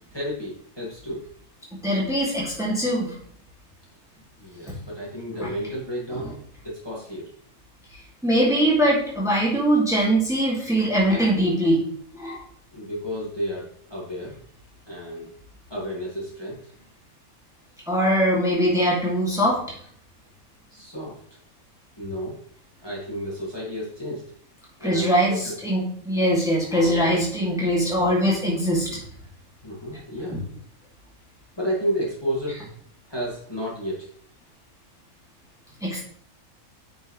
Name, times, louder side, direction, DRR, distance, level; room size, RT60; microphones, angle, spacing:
voice 1, 0.1-1.3 4.4-6.3 6.6-7.3 12.7-14.4 14.9-15.4 15.7-16.7 20.7-21.2 22.0-22.4 22.8-24.2 24.8-25.1 25.4-25.6 26.8-27.1 29.6-30.4 31.6-32.6 33.1-34.1, equal, 15° left, -6 dB, 2.2 m, -31 dB
voice 2, 1.8-3.2 5.4-5.5 8.2-11.8 12.2-12.4 17.9-19.6 24.8-28.9 30.3-30.4 35.8-36.0, equal, ahead, -4 dB, 2.2 m, -22 dB
9.5 x 5.4 x 3.1 m, 0.62 s
omnidirectional pair, 1.5 m